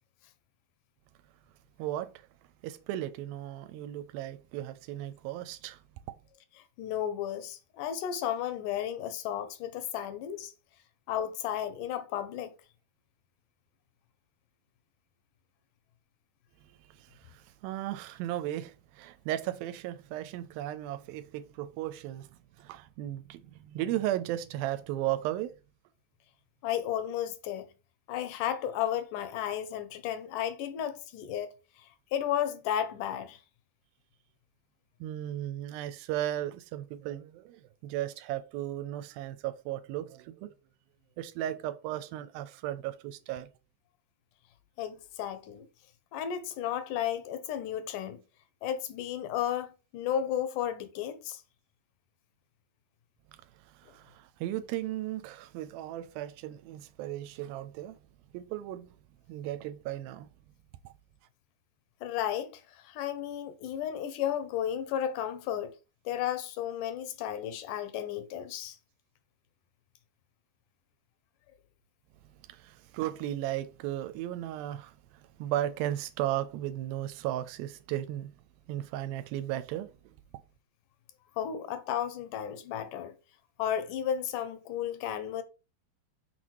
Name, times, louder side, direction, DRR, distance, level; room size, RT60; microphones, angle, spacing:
voice 1, 1.8-2.1 2.6-5.8 17.0-22.3 22.6-25.5 35.0-40.5 41.2-43.5 53.8-58.0 58.3-58.9 59.3-60.3 72.5-74.9 75.4-78.3 78.7-79.9, right 13 dB, 85° right, 2.3 m, -35 dB
voice 2, 6.8-10.5 11.1-12.5 26.6-27.7 28.1-31.5 32.1-33.4 44.8-45.7 46.1-48.2 48.6-51.4 62.0-62.5 62.8-65.7 66.1-68.8 81.4-83.1 83.6-85.4, left 10 dB, 75° left, 2.0 m, -33 dB
6.0 x 4.2 x 4.6 m
omnidirectional pair, 4.2 m